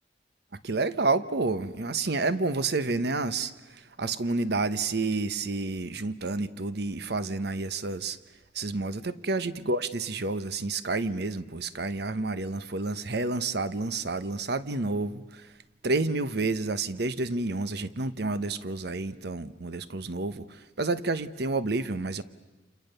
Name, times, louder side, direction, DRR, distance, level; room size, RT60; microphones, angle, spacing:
voice 1, 0.6-8.2 8.5-15.5 15.8-22.2, right 3 dB, 65° right, 1.0 m, -29 dB
29.0 x 29.0 x 6.8 m
head